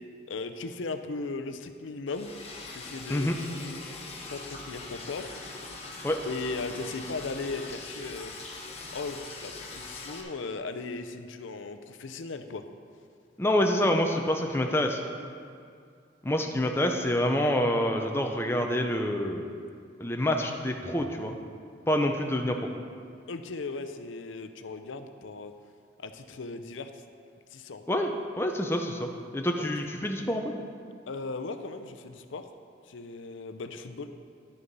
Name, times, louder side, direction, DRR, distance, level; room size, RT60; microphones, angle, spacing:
voice 1, 0.3-2.3 2.7-3.3 3.6-3.8 4.3-5.4 6.2-8.3 8.9-12.7 23.3-25.5 26.0-27.0 27.5-27.8 29.6-29.9 31.1-32.5 32.9-34.1, left 3 dB, 80° left, 8 dB, 0.6 m, -37 dB
Liquid, 2.1-10.2, left 3 dB, 30° left, 1.0 m, -42 dB
voice 2, 13.4-15.0 16.2-19.5 20.0-21.3 21.9-22.7 27.9-28.1 28.4-30.5, left 1 dB, 10° left, 3 dB, 0.6 m, -27 dB
11.0 x 6.8 x 5.3 m, 2.3 s
head